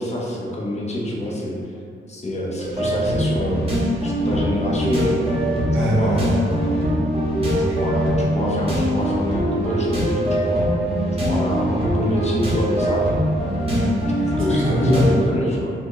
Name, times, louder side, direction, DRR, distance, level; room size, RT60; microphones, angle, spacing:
voice 1, 0.0-1.5 2.1-3.7 4.0-5.2 5.8-6.8 7.8-10.7 11.3-13.0 14.4-15.7, left 1 dB, 30° left, -3 dB, 0.7 m, -26 dB
sound 1, 2.6-15.2, equal, 30° right, 1.0 m, -22 dB
voice 2, 5.7-6.3 7.4-7.9 11.6-11.8 13.7-15.1, equal, 80° right, -5 dB, 0.9 m, -23 dB
4.3 x 2.2 x 3.0 m, 2.4 s
cardioid pair, 95°, 21 cm